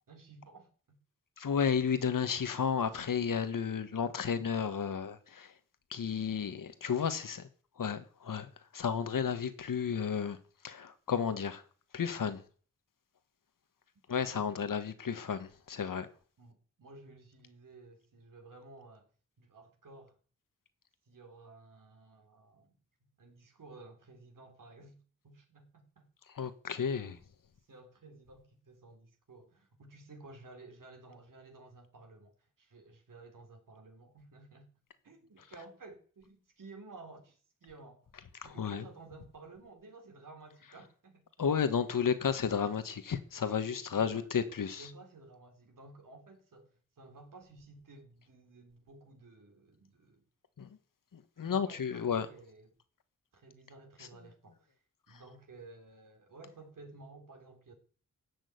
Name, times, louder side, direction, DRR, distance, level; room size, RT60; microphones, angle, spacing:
voice 1, 0.1-1.0 14.3-14.6 16.4-19.1 19.4-20.2 21.1-22.8 23.2-26.1 27.7-34.7 35.0-38.1 38.4-41.2 43.6-44.3 44.7-50.2 51.4-52.7 53.3-54.8 55.1-57.7, right 3 dB, 80° right, 4.1 m, -54 dB
voice 2, 1.4-5.5 5.9-7.5 7.8-10.4 10.6-11.6 11.9-12.4 14.1-16.1 26.3-27.2 38.4-38.8 41.4-44.9 50.6-50.7 51.1-52.3 55.1-55.2, left 7 dB, 80° left, 1.5 m, -32 dB
16.5 x 6.5 x 9.4 m
wide cardioid pair, 95°, 32 cm